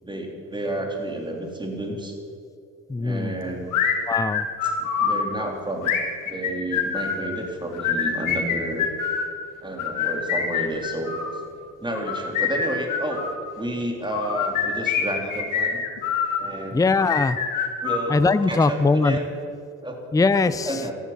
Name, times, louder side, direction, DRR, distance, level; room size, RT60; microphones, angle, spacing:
voice 1, 0.0-2.1 3.0-3.8 4.6-5.9 6.2-8.9 9.6-11.4 11.8-13.3 13.6-15.8 16.4-16.8 17.8-18.2 18.5-19.4 19.8-20.0 20.5-20.9, right 1 dB, 15° right, 2 dB, 3.4 m, -31 dB
voice 2, 2.9-3.3 4.1-4.5 16.7-17.4 18.1-19.2 20.1-20.8, left 3 dB, 10° left, 13 dB, 0.6 m, -21 dB
sound 1, 3.7-5.2 5.8-7.2 7.7-9.3 9.8-11.4 11.9-13.4 14.1-16.4 17.0-18.5, left 7 dB, 90° left, 2.5 m, -25 dB
14.0 x 12.0 x 8.7 m, 2.4 s
cardioid pair, 90°, 30 cm